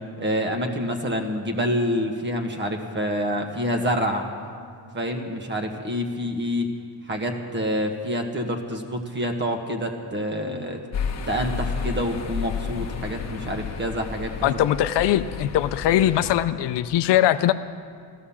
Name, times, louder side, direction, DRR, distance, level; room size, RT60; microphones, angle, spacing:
voice 1, 0.2-4.2 4.9-6.7 7.1-10.8 11.3-14.5, equal, 25° right, 4 dB, 1.6 m, -27 dB
sound 1, 10.9-16.4, left 5 dB, 35° left, 1.1 m, -31 dB
voice 2, 14.4-17.5, left 12 dB, 65° left, 10 dB, 0.6 m, -21 dB
15.0 x 13.5 x 7.2 m, 2.2 s
cardioid pair, 150°, 45 cm